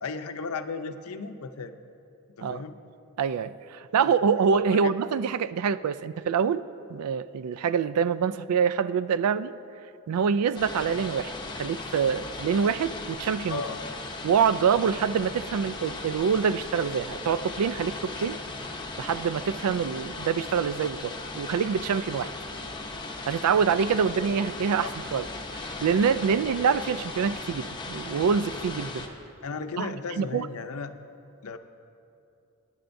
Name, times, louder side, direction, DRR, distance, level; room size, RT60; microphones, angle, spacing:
voice 1, 0.0-1.7 2.4-2.8 4.0-4.1 4.7-4.9 13.5-13.8 24.8-24.9 29.4-30.9 31.4-31.6, left 4 dB, 75° left, 9 dB, 0.6 m, -35 dB
voice 2, 3.2-6.6 6.9-9.5 10.1-13.6 14.2-18.4 19.0-22.3 23.3-25.2 25.5-29.0 29.8-30.5, right 6 dB, 85° right, 15 dB, 0.3 m, -25 dB
sound 1, 10.5-29.1, left 2 dB, 20° left, 0.7 m, -37 dB
20.0 x 10.0 x 2.6 m, 2.6 s
head